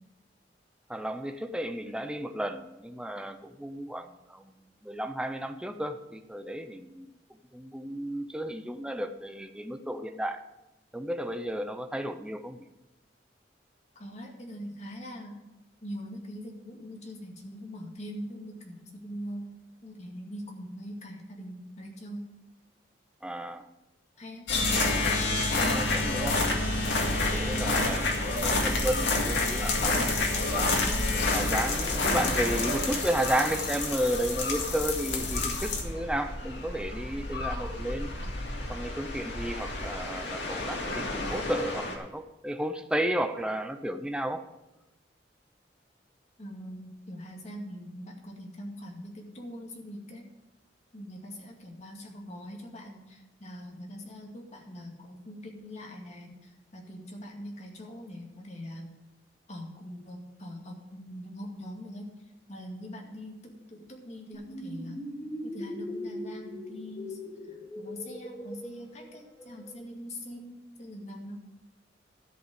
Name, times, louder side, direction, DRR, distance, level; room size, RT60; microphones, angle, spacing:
voice 1, 0.9-7.1 7.5-10.4 10.9-12.7 23.2-23.7 25.6-26.4 27.3-30.8 31.1-38.1 38.7-44.4, right 1 dB, 5° right, 7 dB, 0.6 m, -33 dB
voice 2, 14.0-15.4 15.8-19.4 19.8-22.3 24.2-24.5 27.5-27.8 32.1-32.5 46.4-50.3 50.9-58.9 59.5-62.1 62.5-65.0 65.4-67.2 67.5-71.4, equal, 40° left, 0 dB, 2.2 m, -42 dB
sound 1, 24.5-42.0, left 2 dB, 85° left, 2.0 m, -29 dB
sound 2, 64.3-69.7, left 1 dB, 20° left, 3.3 m, -40 dB
13.0 x 5.4 x 7.6 m, 0.98 s
head